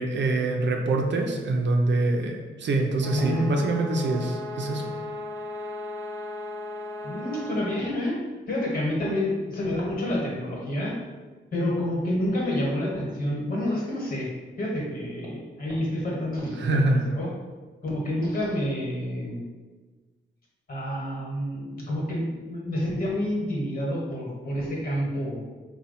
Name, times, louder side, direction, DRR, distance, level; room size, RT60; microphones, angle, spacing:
voice 1, 0.0-4.9 16.6-17.0, right 2 dB, 65° right, 2 dB, 0.6 m, -25 dB
sound 1, 3.0-7.8, left 2 dB, 15° left, 0.7 m, -36 dB
voice 2, 3.1-3.5 7.0-8.2 8.5-11.0 11.5-14.3 14.6-17.3 17.8-19.4 20.7-25.4, left 1 dB, 45° left, -4 dB, 1.3 m, -28 dB
4.3 x 2.3 x 4.1 m, 1.3 s
wide cardioid pair, 130°, 20 cm